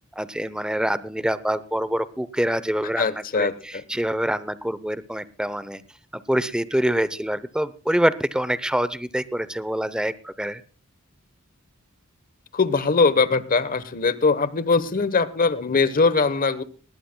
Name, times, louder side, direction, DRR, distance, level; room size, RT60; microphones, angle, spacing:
voice 1, 0.1-5.8 6.3-10.6, right 1 dB, 5° right, 15 dB, 0.7 m, -25 dB
voice 2, 3.0-3.8 12.5-16.6, left 4 dB, 40° left, 15 dB, 1.0 m, -21 dB
19.5 x 19.0 x 2.2 m, 0.37 s
head